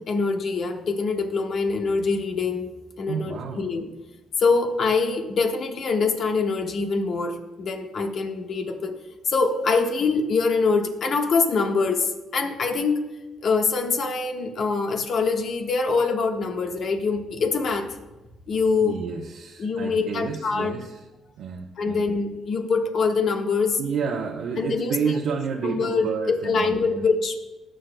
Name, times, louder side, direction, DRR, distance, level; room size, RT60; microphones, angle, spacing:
voice 1, 0.0-2.7 3.0-3.9 4.4-9.0 9.3-13.0 13.4-18.0 18.5-19.0 19.6-20.7 21.8-23.8 24.6-25.1 25.6-27.4, left 4 dB, 60° left, 3 dB, 1.4 m, -24 dB
voice 2, 3.1-3.6 18.8-21.0 21.4-22.0 23.8-27.0, right 6 dB, 75° right, -1 dB, 0.9 m, -30 dB
19.5 x 7.6 x 2.3 m, 1.1 s
cardioid pair, 90°, 0 cm